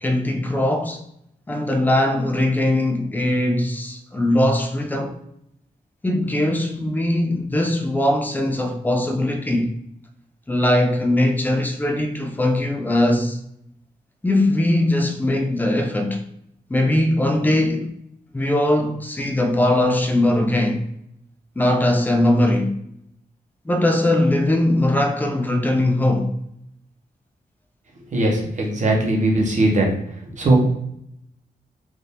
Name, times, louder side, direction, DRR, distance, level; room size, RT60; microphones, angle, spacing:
voice 1, 0.0-1.0 1.5-5.2 6.0-9.7 10.5-13.4 14.2-16.2 16.7-17.9 18.3-20.8 21.6-22.7 23.6-26.3, left 1 dB, 10° left, 0.4 m, -20 dB
voice 2, 28.1-29.9 30.4-30.7, right 1 dB, 50° right, 0.9 m, -19 dB
3.4 x 2.6 x 2.8 m
wide cardioid pair, 155°, 16 cm